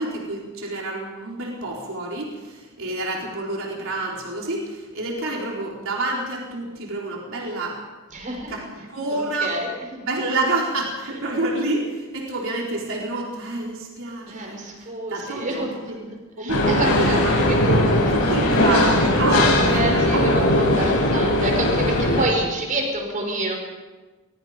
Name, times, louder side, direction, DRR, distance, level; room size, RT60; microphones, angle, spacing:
voice 1, 0.0-7.8 8.5-9.5 10.0-15.6 16.4-17.3 18.1-20.2, right 2 dB, 60° right, -2 dB, 4.5 m, -28 dB
voice 2, 8.1-8.5 9.1-10.0 14.3-16.1 16.4-18.4 19.3-23.5, right 1 dB, 35° right, 1 dB, 5.7 m, -28 dB
sound 1, 16.5-22.3, left 1 dB, 90° left, 7.2 m, -19 dB
23.0 x 21.5 x 5.3 m, 1.3 s
head